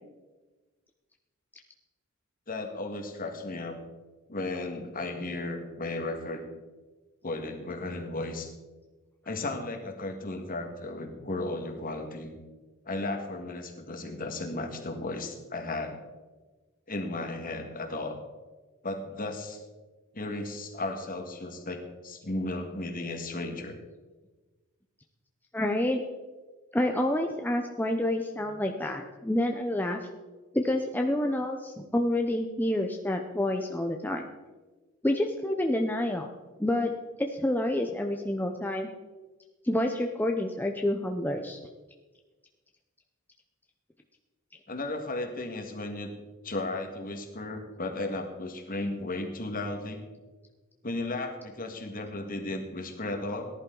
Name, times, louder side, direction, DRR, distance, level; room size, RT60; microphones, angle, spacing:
voice 1, 2.5-3.8 4.3-6.4 7.2-8.5 9.3-12.3 12.8-16.0 16.9-18.2 18.8-19.6 20.1-23.8 44.7-46.1 46.4-50.0 50.8-53.5, left 2 dB, 45° left, 4 dB, 1.9 m, -35 dB
voice 2, 25.5-26.0 26.7-30.0 30.5-34.3 35.0-36.3 36.6-36.9 37.2-38.9 39.6-41.6, left 1 dB, 10° left, 3 dB, 0.7 m, -28 dB
18.0 x 11.0 x 3.9 m, 1.3 s
head